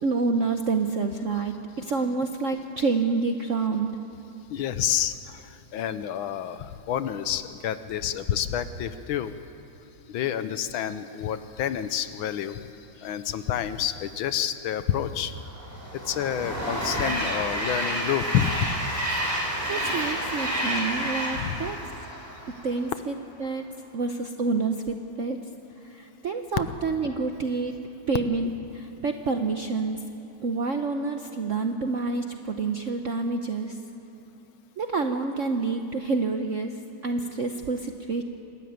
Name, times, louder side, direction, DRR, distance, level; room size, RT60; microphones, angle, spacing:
voice 1, 0.0-3.9 13.0-13.1 19.7-21.8 22.6-23.1 23.4-23.7 23.9-25.4 25.8-27.8 28.1-30.0 30.4-33.8 34.8-38.2, right 4 dB, 60° right, 5 dB, 0.8 m, -28 dB
voice 2, 4.5-9.3 10.1-12.7 13.0-15.3 16.1-18.7 21.3-21.7, left 10 dB, 75° left, 12 dB, 1.5 m, -29 dB
Train, 15.4-22.8, right 1 dB, 5° right, 3.6 m, -30 dB
27.0 x 13.0 x 9.3 m, 2.9 s
omnidirectional pair, 2.3 m